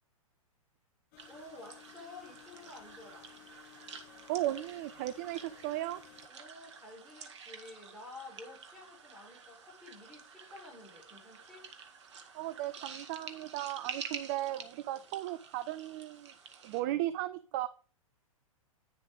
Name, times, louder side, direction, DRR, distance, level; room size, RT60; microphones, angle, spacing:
sound 1, 1.1-6.3, left 15 dB, 35° left, 0.7 m, -57 dB
sound 2, 1.2-16.8, right 6 dB, 55° right, 1.2 m, -49 dB
voice 1, 1.3-3.3 6.3-11.7 14.9-15.0 16.8-17.1, left 2 dB, ahead, -5 dB, 4.4 m, -51 dB
voice 2, 4.3-6.0 12.3-16.3 16.6-17.7, right 15 dB, 30° right, 14 dB, 0.4 m, -36 dB
8.8 x 6.8 x 3.8 m, 0.38 s
figure-of-eight pair, 105°, 18 cm